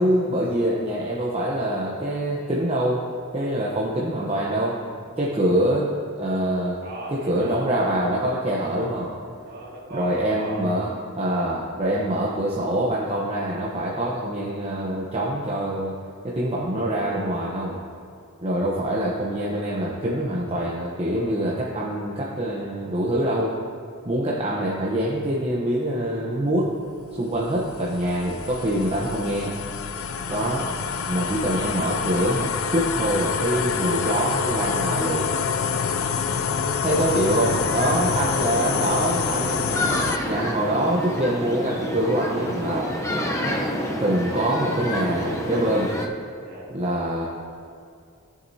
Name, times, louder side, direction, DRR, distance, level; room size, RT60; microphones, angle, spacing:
voice 1, 0.0-3.0 3.3-4.8 5.2-5.9 6.2-6.8 7.1-9.1 9.9-16.0 16.2-17.8 18.4-23.5 24.0-26.8 27.2-29.5 30.3-30.7 31.1-35.3 36.8-39.8 40.3-42.9 44.0-45.9 46.7-47.3, right 1 dB, 30° right, -4 dB, 0.9 m, -25 dB
voice 2, 6.8-7.6 9.4-11.0 35.9-36.4 46.4-46.7, right 2 dB, 50° right, -5 dB, 2.3 m, -38 dB
sound 1, 26.7-40.2, left 6 dB, 75° left, 0.5 m, -27 dB
sound 2, 37.4-46.1, equal, 15° left, 0.8 m, -28 dB
15.0 x 7.7 x 2.8 m, 2.4 s
head